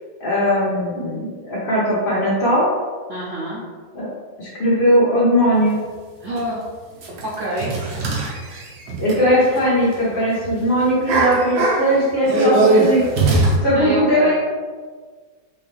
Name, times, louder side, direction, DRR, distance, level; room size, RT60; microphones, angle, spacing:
voice 1, 0.2-2.7 3.9-4.1 4.4-5.8 9.0-13.1 13.6-14.3, equal, 65° left, -11 dB, 2.0 m, -18 dB
voice 2, 3.1-3.6 6.2-6.6 7.2-7.8 13.7-14.3, right 1 dB, 85° right, -5 dB, 0.6 m, -27 dB
sound 1, 5.7-5.8 6.4-6.5 7.0-10.0 10.2-10.5 10.9-13.6, right 2 dB, 60° right, 1.3 m, -20 dB
5.5 x 2.5 x 3.4 m, 1.5 s
omnidirectional pair, 2.2 m